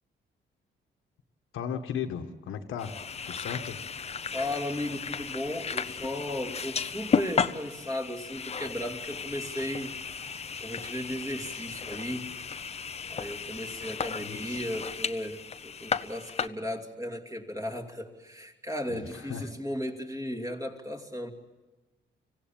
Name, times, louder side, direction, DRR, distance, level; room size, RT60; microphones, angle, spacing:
voice 1, 1.5-3.0 3.3-3.8 11.9-12.0 14.2-14.6 18.9-19.5, left 7 dB, 80° left, 6 dB, 1.4 m, -36 dB
sound 1, 2.8-16.5, left 6 dB, 30° left, 0.7 m, -34 dB
voice 2, 4.3-9.9 10.6-12.3 13.1-21.3, left 1 dB, 15° right, 2 dB, 2.7 m, -35 dB
25.0 x 16.5 x 8.8 m, 1.2 s
cardioid pair, 90°, 20 cm